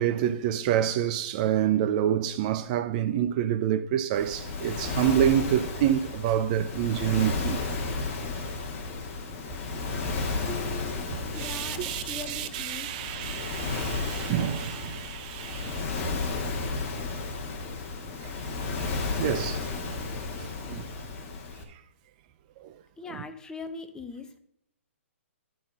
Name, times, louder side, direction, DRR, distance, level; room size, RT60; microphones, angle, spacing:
voice 1, 0.0-7.6 11.3-15.9 18.2-18.3 19.2-19.6 20.7-20.9 21.7-21.8 22.6-22.7, right 10 dB, 35° right, 0.4 m, -27 dB
Waves surf, 4.1-21.6, left 3 dB, 30° left, 1.6 m, -33 dB
voice 2, 10.5-11.0 11.3-12.9 23.0-24.4, left 3 dB, 10° left, 0.7 m, -40 dB
12.0 x 4.2 x 5.7 m
hypercardioid pair, 145°, 7 cm